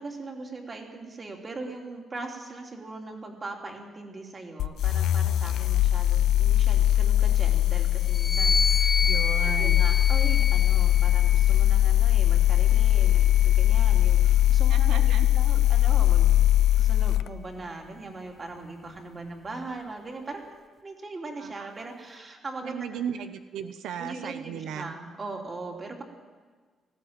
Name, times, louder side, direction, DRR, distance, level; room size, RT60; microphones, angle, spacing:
voice 1, 0.0-8.9 9.4-14.2 14.5-16.3 16.7-20.5 20.8-23.0 24.0-26.0, right 3 dB, 25° right, 2 dB, 3.0 m, -40 dB
sound 1, 4.6-17.3, left 13 dB, 75° left, 0.6 m, -21 dB
sound 2, 8.1-11.7 12.5-14.1, left 4 dB, 20° left, 1.0 m, -30 dB
voice 2, 9.0-9.9 14.7-15.3 21.4-21.7 22.6-24.9, right 8 dB, 85° right, 9 dB, 1.1 m, -36 dB
18.5 x 16.0 x 8.9 m, 1.5 s
cardioid pair, 165°, 0 cm